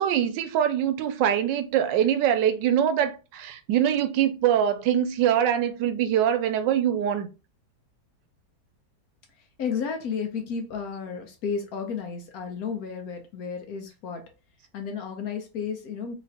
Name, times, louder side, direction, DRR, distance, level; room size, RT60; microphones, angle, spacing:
voice 1, 0.0-7.3, right 10 dB, 90° right, 1.2 m, -23 dB
voice 2, 9.6-14.2 14.7-16.1, left 6 dB, 65° left, 1.1 m, -32 dB
3.2 x 2.9 x 2.7 m
omnidirectional pair, 1.9 m